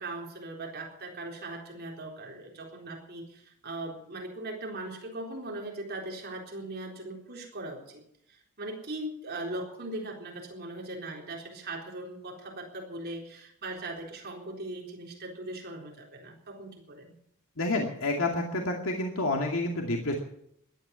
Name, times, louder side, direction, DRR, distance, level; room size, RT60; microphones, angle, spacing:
voice 1, 0.0-8.0 8.3-17.1, right 2 dB, 45° right, 0 dB, 4.0 m, -39 dB
voice 2, 17.6-20.1, left 2 dB, 70° left, 1 dB, 2.4 m, -29 dB
17.0 x 12.0 x 7.1 m, 0.73 s
head